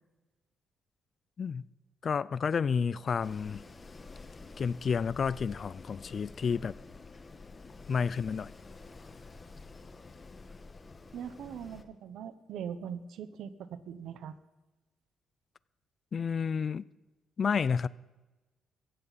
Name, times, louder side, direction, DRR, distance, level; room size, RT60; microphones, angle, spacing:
voice 1, 2.0-3.6 4.6-6.7 7.9-8.5 16.1-16.9 17.4-17.9, left 6 dB, 45° left, 0.4 m, -30 dB
Wind, 3.2-11.8, left 3 dB, 30° left, 1.3 m, -49 dB
voice 2, 11.1-14.3, right 8 dB, 80° right, 1.0 m, -41 dB
17.0 x 15.5 x 4.2 m
cardioid pair, 90°, 0 cm